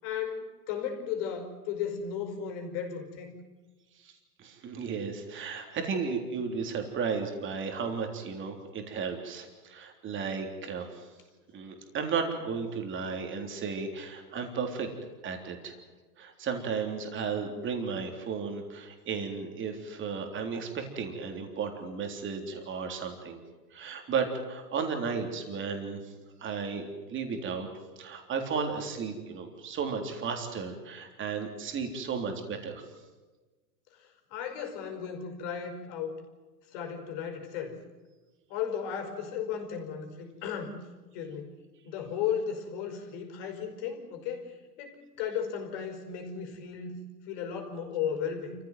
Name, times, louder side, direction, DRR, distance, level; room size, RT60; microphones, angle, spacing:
voice 1, 0.0-3.3 33.9-36.1 36.7-37.8 38.5-40.8 41.1-41.6 41.8-46.9 47.3-48.6, left 7 dB, 45° left, 5 dB, 5.1 m, -35 dB
voice 2, 4.4-11.1 11.5-14.9 15.2-15.8 16.2-23.4 23.7-26.0 26.4-27.7 28.0-32.8, right 5 dB, 25° right, 4 dB, 3.5 m, -34 dB
27.5 x 15.0 x 9.3 m, 1.3 s
hypercardioid pair, 135°, 49 cm